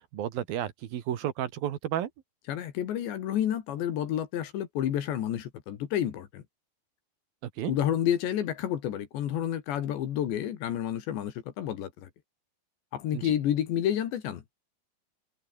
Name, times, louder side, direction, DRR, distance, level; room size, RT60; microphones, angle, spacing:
voice 1, 0.1-2.1 7.6-7.7 13.1-13.3, right 11 dB, 60° right, 3.0 m, -32 dB
voice 2, 2.5-6.4 7.7-12.1 12.9-14.4, left 10 dB, 70° left, 4.2 m, -30 dB
omnidirectional pair, 5.4 m